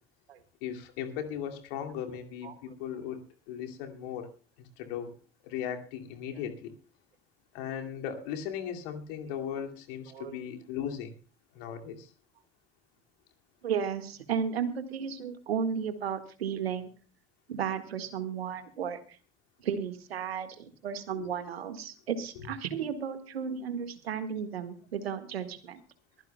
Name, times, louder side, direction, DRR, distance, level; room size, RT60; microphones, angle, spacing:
voice 1, 0.6-4.3 4.8-5.1 5.4-6.7 7.5-11.1 11.5-12.1 21.2-21.3, left 9 dB, 65° left, 3 dB, 2.5 m, -37 dB
voice 2, 10.1-10.4 13.6-16.9 17.5-19.2 19.6-25.8, right 7 dB, 80° right, 9 dB, 1.8 m, -34 dB
22.5 x 15.5 x 2.3 m, 0.36 s
figure-of-eight pair, 60°, 31 cm